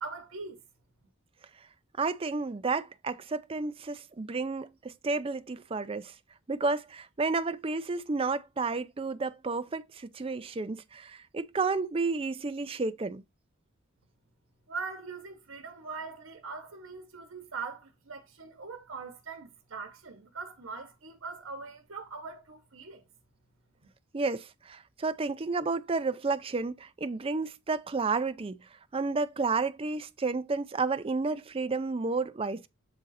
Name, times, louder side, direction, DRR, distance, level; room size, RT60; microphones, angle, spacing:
voice 1, 0.0-0.6 14.7-23.0, right 4 dB, 70° right, 1.0 m, -41 dB
voice 2, 2.0-6.1 6.5-13.2 24.1-28.6 28.9-32.7, right 4 dB, 25° right, 0.4 m, -31 dB
7.8 x 3.7 x 4.1 m
head